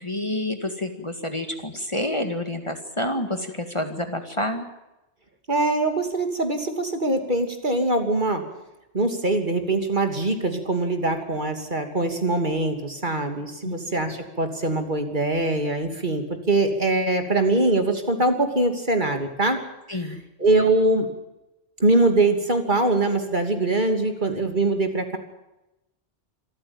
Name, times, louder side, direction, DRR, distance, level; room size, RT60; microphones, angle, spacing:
voice 1, 0.0-4.7 13.6-13.7 19.9-20.2, left 1 dB, 25° left, 6 dB, 2.1 m, -28 dB
voice 2, 5.5-8.4 8.9-19.6 19.9-21.1 21.8-25.2, right 2 dB, 45° right, 6 dB, 3.0 m, -23 dB
26.0 x 14.5 x 8.9 m, 0.95 s
omnidirectional pair, 1.1 m